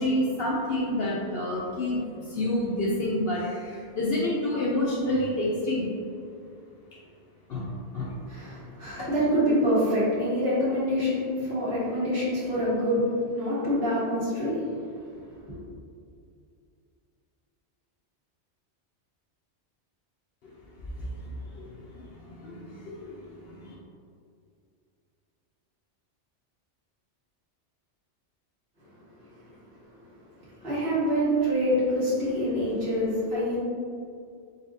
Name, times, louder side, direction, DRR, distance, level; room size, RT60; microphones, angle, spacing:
voice 1, 0.0-2.0 2.3-3.6 4.0-5.8 7.5-7.7 7.9-8.1 9.0-9.1 22.4-22.6 22.9-23.1, left 1 dB, 65° left, -5 dB, 0.8 m, -27 dB
voice 2, 8.3-14.8 15.1-15.2 15.5-15.6 30.6-33.6, equal, 60° right, -9 dB, 1.6 m, -26 dB
4.0 x 3.9 x 2.6 m, 2.4 s
omnidirectional pair, 1.2 m